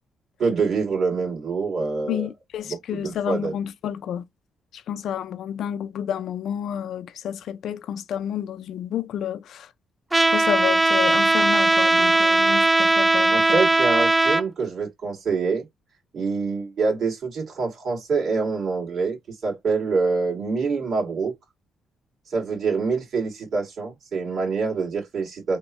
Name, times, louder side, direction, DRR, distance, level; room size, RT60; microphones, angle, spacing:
voice 1, 0.4-2.3 2.7-3.5 13.3-15.7 16.1-21.3 22.3-25.6, right 4 dB, 60° right, 2.2 m, -25 dB
voice 2, 2.1-4.2 4.7-9.7 10.3-13.6, left 9 dB, 75° left, 0.3 m, -30 dB
Trumpet, 10.1-14.4, right 2 dB, 10° right, 0.4 m, -19 dB
3.5 x 2.1 x 3.1 m
cardioid pair, 90°, 0 cm